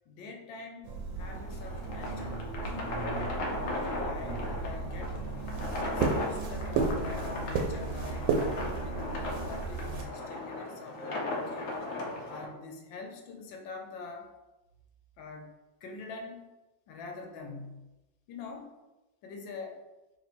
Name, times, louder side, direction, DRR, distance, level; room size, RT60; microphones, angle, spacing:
voice 1, 0.1-3.0 3.3-5.2 5.8-8.3 8.8-11.9 12.3-14.3 15.2-15.5 15.8-16.5 16.9-17.9 18.3-18.7 19.2-19.8, left 4 dB, 80° left, 3 dB, 1.4 m, -45 dB
sound 1, 0.8-10.0, right 4 dB, 85° right, 1.3 m, -34 dB
sound 2, 1.2-12.5, left 2 dB, 65° left, 0.8 m, -37 dB
3.2 x 3.0 x 4.1 m, 1.0 s
omnidirectional pair, 2.0 m